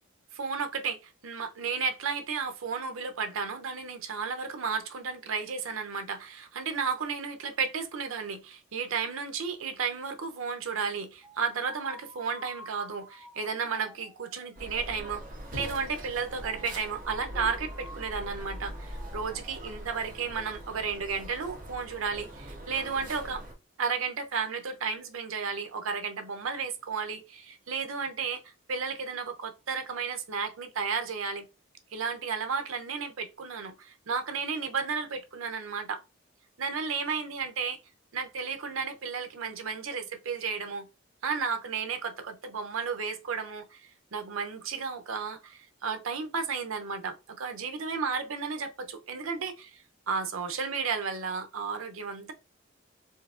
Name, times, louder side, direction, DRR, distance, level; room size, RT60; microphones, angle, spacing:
voice 1, 0.3-15.2 15.5-23.4 23.8-28.4 28.7-31.4 31.9-36.0 36.6-37.8 38.1-40.9 41.2-43.8 44.1-49.8 50.1-52.3, right 5 dB, 90° right, 0.6 m, -33 dB
sound 1, 11.2-20.1, equal, 5° right, 0.6 m, -51 dB
sound 2, 14.6-23.5, equal, 40° right, 1.3 m, -42 dB
4.5 x 2.7 x 2.4 m
head